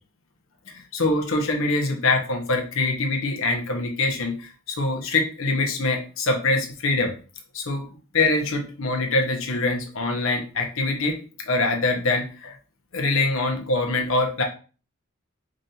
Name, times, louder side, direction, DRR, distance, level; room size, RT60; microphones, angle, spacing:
voice 1, 0.9-7.1 7.5-7.8 8.1-11.2 11.5-12.5 12.9-14.4, left 2 dB, 70° left, 2 dB, 0.9 m, -24 dB
5.0 x 2.6 x 2.8 m, 0.36 s
head